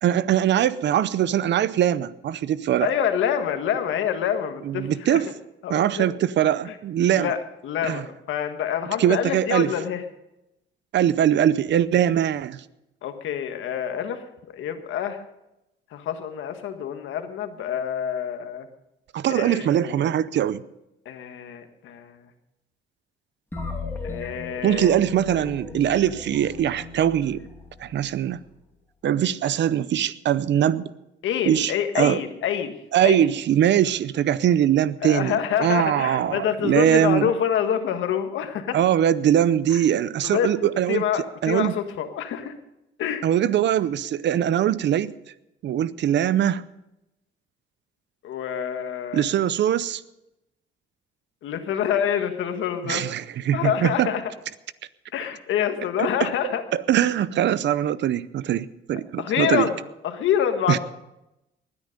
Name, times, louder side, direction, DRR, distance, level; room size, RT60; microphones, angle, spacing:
voice 1, 0.0-2.9 4.6-5.3 5.7-7.3 7.8-8.0 9.0-9.7 10.9-12.6 19.1-20.6 24.6-27.4 27.8-28.4 29.0-30.8 31.5-32.2 32.9-37.3 38.7-41.1 41.4-41.7 43.2-45.1 45.6-46.6 49.1-50.0 52.8-54.1 56.0-56.3 56.7-59.7 60.7-60.8, right 10 dB, 65° right, 18 dB, 0.6 m, -22 dB
voice 2, 2.8-5.2 5.6-6.1 6.7-6.8 7.1-7.4 7.6-10.0 13.0-14.2 14.5-15.2 15.9-18.7 19.3-20.1 21.0-22.2 24.0-24.9 31.2-32.8 33.0-33.3 35.0-38.8 39.7-39.8 40.2-40.5 40.9-42.5 43.0-43.2 48.2-49.2 51.4-53.0 53.5-54.2 55.1-56.6 59.2-60.8, left 9 dB, 80° left, 7 dB, 1.6 m, -26 dB
sound 1, 23.5-28.2, left 3 dB, 10° left, 2.6 m, -37 dB
19.5 x 9.6 x 5.2 m, 0.90 s
cardioid pair, 90°, 20 cm